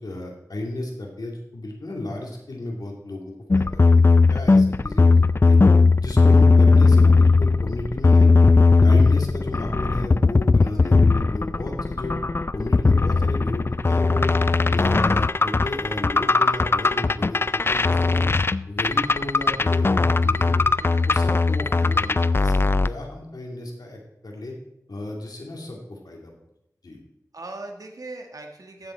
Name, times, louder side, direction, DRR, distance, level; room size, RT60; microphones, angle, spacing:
voice 1, 0.0-5.2 5.4-5.6 6.0-8.3 8.8-12.1 12.5-14.3 14.7-18.3 18.7-20.7 21.0-24.5 24.9-26.3 26.8-27.0, left 1 dB, 85° left, 0 dB, 2.4 m, -33 dB
sound 1, 3.5-22.9, left 3 dB, 35° left, 0.3 m, -18 dB
voice 2, 20.8-21.1 27.3-28.9, right 2 dB, 65° right, 3 dB, 1.5 m, -39 dB
15.0 x 6.9 x 4.4 m, 0.84 s
wide cardioid pair, 60°, 7 cm